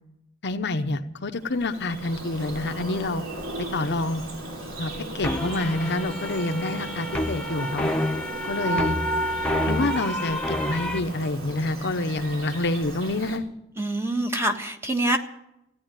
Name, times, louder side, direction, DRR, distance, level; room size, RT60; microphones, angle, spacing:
voice 1, 0.4-3.2 3.6-4.2 4.8-7.9 8.5-9.0 9.7-13.4, left 2 dB, 55° left, 7 dB, 0.9 m, -27 dB
Bird vocalization bird call bird song, 1.3-13.4, right 2 dB, 75° right, 3.4 m, -37 dB
sound 1, 5.2-11.0, equal, 5° left, 1.2 m, -28 dB
voice 2, 13.8-15.2, right 1 dB, 10° right, 4 dB, 1.4 m, -25 dB
15.5 x 9.7 x 9.0 m, 0.84 s
head